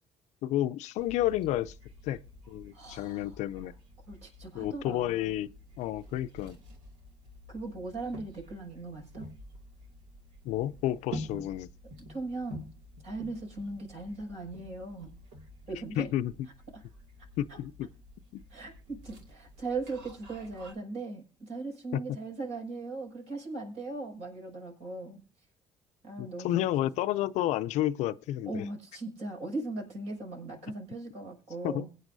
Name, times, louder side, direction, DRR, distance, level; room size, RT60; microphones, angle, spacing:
voice 1, 0.4-1.7 2.0-2.2 2.5-3.7 4.5-5.5 5.8-6.6 10.4-11.7 16.0-16.3 17.4-17.9 18.3-18.4 26.2-28.7 31.6-31.9, left 13 dB, 70° left, 0.5 m, -31 dB
sound 1, 1.0-20.7, equal, 80° right, 2.4 m, -48 dB
voice 2, 2.7-3.7 4.1-5.4 7.5-9.3 11.3-11.4 12.1-12.7 13.0-15.1 15.7-16.1 16.7-16.8 17.5-17.6 18.5-25.2 26.0-26.7 28.5-31.9, right 3 dB, 65° right, 5.8 m, -39 dB
22.5 x 9.3 x 2.7 m
hypercardioid pair, 60°, 12 cm